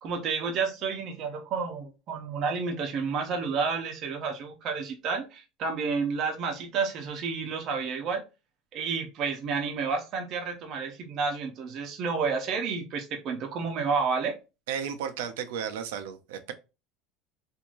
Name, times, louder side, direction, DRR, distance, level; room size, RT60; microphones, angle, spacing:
voice 1, 0.0-8.2 8.7-14.4, right 5 dB, 50° right, 0.8 m, -30 dB
voice 2, 14.7-16.5, right 8 dB, 90° right, 0.5 m, -34 dB
3.0 x 2.6 x 2.5 m
supercardioid pair, 125°, 0 cm